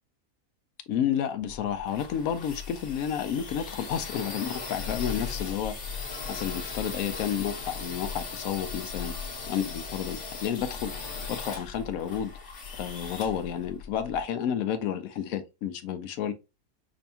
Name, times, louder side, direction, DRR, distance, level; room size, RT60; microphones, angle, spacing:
voice 1, 0.9-5.7 6.2-9.1 9.5-12.3 12.7-16.3, left 9 dB, 70° left, 0.9 m, -31 dB
sound 1, 1.5-14.2, left 5 dB, 50° left, 1.4 m, -38 dB
5.1 x 2.3 x 2.7 m
omnidirectional pair, 1.7 m